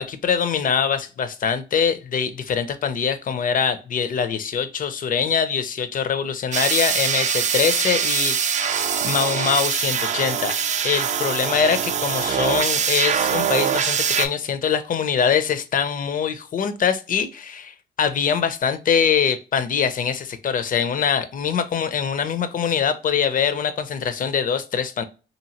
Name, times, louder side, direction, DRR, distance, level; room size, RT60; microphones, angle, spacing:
voice 1, 0.0-8.8 9.0-10.6 10.8-25.0, left 7 dB, 45° left, 0.5 m, -23 dB
sound 1, 6.5-14.3, right 7 dB, 40° right, 0.4 m, -23 dB
2.8 x 2.6 x 2.8 m
cardioid pair, 90°, 20 cm